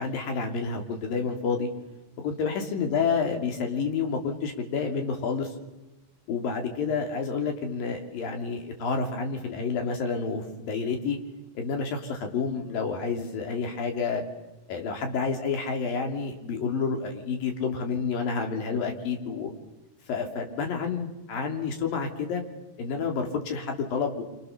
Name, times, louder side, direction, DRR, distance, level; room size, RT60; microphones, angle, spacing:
voice 1, 0.0-1.7 2.2-5.5 6.3-11.2 11.6-14.2 14.7-19.5 20.1-22.4 22.8-24.2, left 5 dB, 75° left, 4 dB, 4.6 m, -29 dB
27.5 x 26.0 x 6.7 m, 1.0 s
omnidirectional pair, 4.0 m